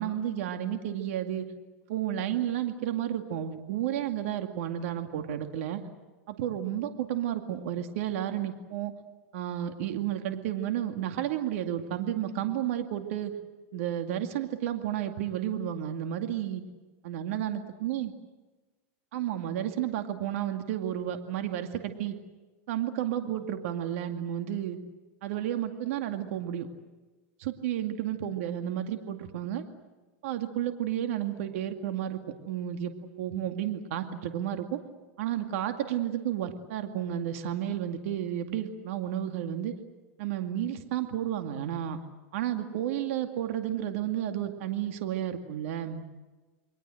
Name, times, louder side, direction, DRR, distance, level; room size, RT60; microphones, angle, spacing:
voice 1, 0.0-1.5 1.9-5.8 6.3-8.9 9.3-13.3 13.7-16.6 17.0-18.1 19.1-22.2 22.7-24.8 25.2-26.7 27.4-29.6 30.2-32.9 33.2-34.8 35.2-39.7 40.2-42.0 42.3-46.0, right 11 dB, 65° right, 6 dB, 2.3 m, -32 dB
29.0 x 22.5 x 7.9 m, 1.2 s
supercardioid pair, 145°, 8 cm